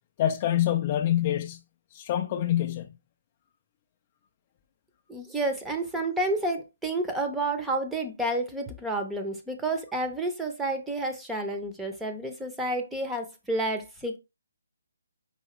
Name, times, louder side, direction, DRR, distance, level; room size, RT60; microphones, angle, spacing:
voice 1, 0.2-1.6 1.9-2.9, left 12 dB, 30° left, 0.4 m, -26 dB
voice 2, 5.1-14.2, right 2 dB, 5° right, 0.7 m, -30 dB
4.8 x 2.8 x 3.0 m
figure-of-eight pair, 140°, 0 cm